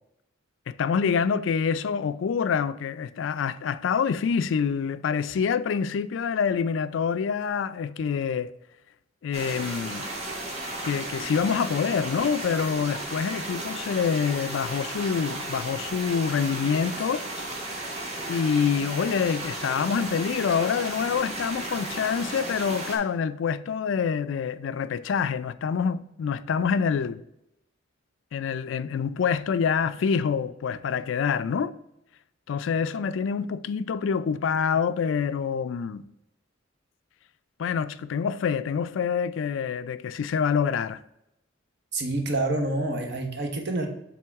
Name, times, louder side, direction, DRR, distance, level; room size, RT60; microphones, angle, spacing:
voice 1, 0.7-8.5 9.2-10.1 10.8-17.3 18.3-27.2 28.3-31.7 32.5-36.0 37.6-41.0, left 6 dB, 70° left, 0.3 m, -26 dB
sound 1, 9.3-23.0, right 1 dB, 35° right, 1.5 m, -34 dB
voice 2, 41.9-43.9, right 2 dB, 60° right, 1.1 m, -27 dB
7.6 x 3.5 x 3.5 m
head